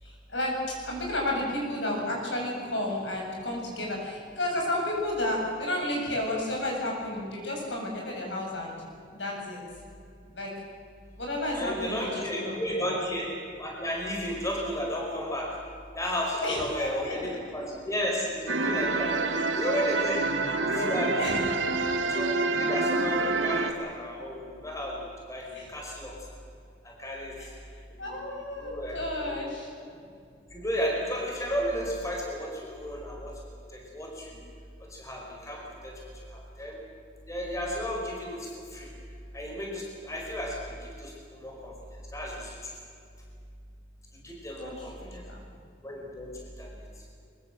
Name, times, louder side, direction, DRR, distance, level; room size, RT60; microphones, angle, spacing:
voice 1, 0.0-0.6 0.8-8.8 9.1-9.6 10.3-10.5 11.2-12.9 16.4-17.4 19.1-19.3 20.7-20.9 21.2-21.3 23.2-23.3 25.5-25.7 27.4-29.7 44.6-45.4, left 1 dB, 75° left, -1 dB, 7.7 m, -32 dB
voice 2, 11.5-13.3 13.6-15.5 15.9-19.1 19.5-20.3 20.7-21.4 22.1-26.1 26.8-27.5 27.9-29.5 30.5-33.3 33.7-34.4 34.9-35.9 36.3-36.8 37.3-38.9 39.3-42.7 44.2-45.2 45.8-46.3 46.6-46.7, equal, 15° left, -1 dB, 4.8 m, -33 dB
sound 1, 18.5-23.7, right 3 dB, 80° right, 2.0 m, -27 dB
23.5 x 23.0 x 7.7 m, 2.4 s
head